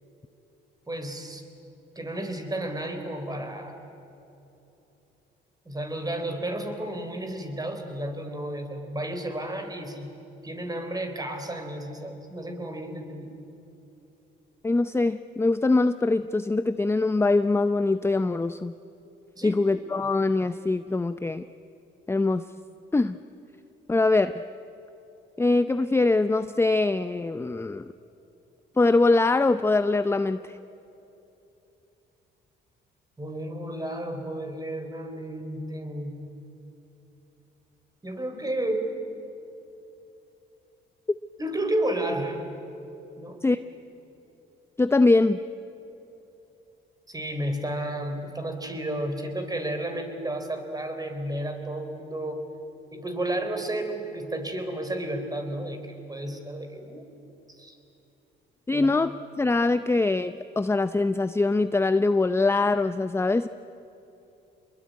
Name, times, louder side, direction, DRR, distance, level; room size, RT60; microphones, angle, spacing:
voice 1, 0.9-1.4 2.0-3.7 5.7-10.1 10.4-13.3 19.4-19.6 33.2-36.2 38.0-38.9 41.4-42.4 43.2-43.4 47.1-52.4 52.9-57.0 57.6-57.8 58.7-58.9, right 1 dB, 20° right, 6 dB, 4.0 m, -32 dB
voice 2, 14.6-18.7 19.4-21.4 22.1-22.4 22.9-23.2 23.9-24.3 25.4-27.9 28.8-30.6 43.4-43.6 44.8-45.4 58.7-63.5, left 3 dB, 10° left, 12 dB, 0.6 m, -23 dB
26.5 x 21.5 x 9.5 m, 2.9 s
cardioid pair, 90°, 20 cm